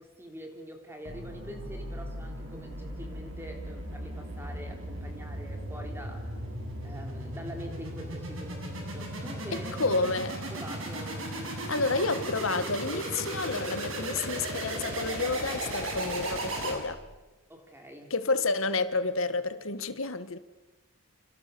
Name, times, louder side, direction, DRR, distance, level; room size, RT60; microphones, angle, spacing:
voice 1, 0.0-6.3 6.8-10.0 10.5-11.9 17.5-18.1, right 1 dB, 10° right, 3.5 m, -45 dB
sound 1, 1.0-17.2, right 1 dB, 70° right, 7.2 m, -36 dB
voice 2, 9.5-10.4 11.7-17.0 18.1-20.4, left 3 dB, 70° left, 1.5 m, -30 dB
29.5 x 26.5 x 6.9 m
head